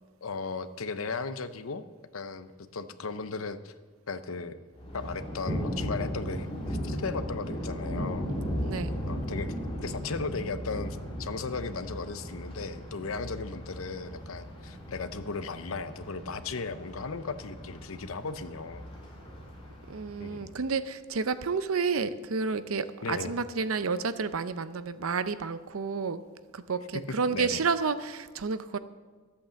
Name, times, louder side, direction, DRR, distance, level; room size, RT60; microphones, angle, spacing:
voice 1, 0.2-1.8 2.1-3.7 4.1-4.6 4.9-8.3 9.1-9.5 9.8-18.9 20.2-20.6 23.0-23.4 27.1-27.6, left 4 dB, 85° left, 12 dB, 0.7 m, -36 dB
Thunder, 4.7-20.7, equal, 25° left, 2.9 m, -37 dB
voice 2, 19.9-26.2 26.5-28.8, right 5 dB, 85° right, 13 dB, 0.6 m, -30 dB
13.0 x 8.6 x 7.1 m, 1.4 s
head